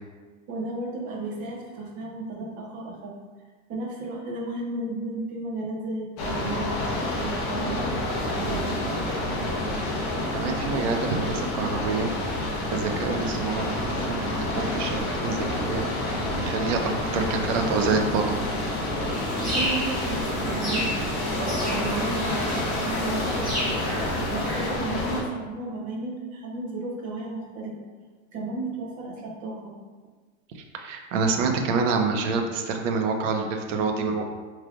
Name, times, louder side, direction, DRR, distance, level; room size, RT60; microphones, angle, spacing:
voice 1, 0.5-3.1 3.7-6.7 7.1-8.7 19.4-27.7 28.3-29.7, right 2 dB, 20° right, -3 dB, 0.5 m, -34 dB
sound 1, 6.2-25.2, left 1 dB, 35° left, 0.6 m, -28 dB
voice 2, 10.3-12.2 12.7-18.4 30.5-34.3, right 4 dB, 80° right, 4 dB, 0.7 m, -27 dB
sound 2, 19.1-24.7, equal, ahead, 1.4 m, -32 dB
4.9 x 3.2 x 2.3 m, 1.4 s
supercardioid pair, 180°, 37 cm